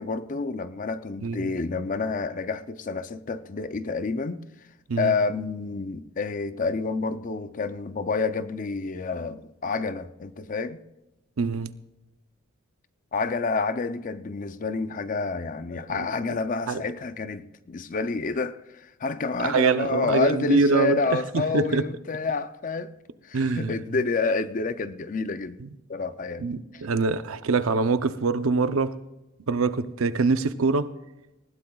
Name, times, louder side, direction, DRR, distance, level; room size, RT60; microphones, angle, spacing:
voice 1, 0.0-4.4 5.0-10.8 13.1-22.9 23.2-25.6 25.9-26.5 26.7-26.8, left 4 dB, 40° left, 0.5 m, -29 dB
voice 2, 1.2-1.5 4.9-5.1 11.4-11.7 15.9-16.4 16.7-16.8 19.4-21.9 23.3-23.7 25.6-25.7 26.4-28.9 29.5-30.9, right 4 dB, 80° right, 0.6 m, -24 dB
19.5 x 15.5 x 2.3 m
head